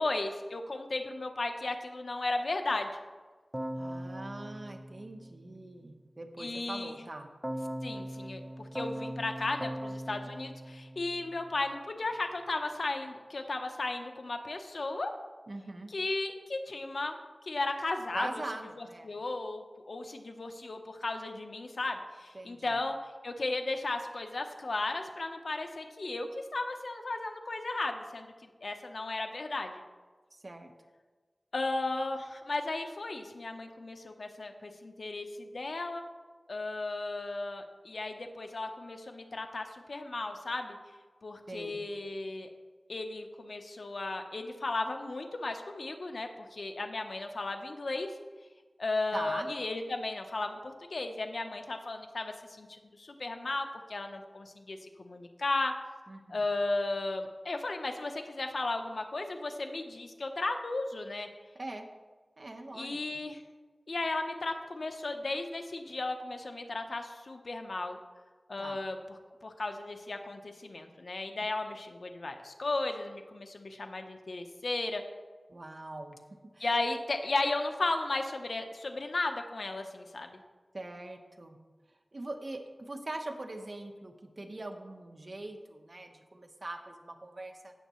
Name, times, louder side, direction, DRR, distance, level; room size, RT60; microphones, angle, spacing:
voice 1, 0.0-2.9 6.4-7.0 7.8-15.1 15.9-17.2 17.5-18.4 18.8-23.0 23.2-29.7 31.5-36.0 36.5-40.8 41.2-42.5 42.9-48.1 48.8-55.7 56.3-61.3 62.7-63.4 63.9-68.0 68.5-69.0 69.4-75.0 76.6-80.4, left 2 dB, 75° left, 5 dB, 0.9 m, -35 dB
Keyboard (musical), 3.5-5.9 7.4-11.7, equal, 15° right, 0.6 m, -40 dB
voice 2, 3.8-7.3 15.5-15.9 18.1-19.1 22.3-22.8 30.3-30.7 41.5-41.8 49.1-49.5 56.1-56.5 61.5-61.9 62.4-63.2 68.6-68.8 75.5-76.2 76.5-76.7 80.7-81.6 82.1-87.7, right 2 dB, 50° right, 4 dB, 1.2 m, -42 dB
17.5 x 6.6 x 3.1 m, 1.4 s
wide cardioid pair, 65°, 0 cm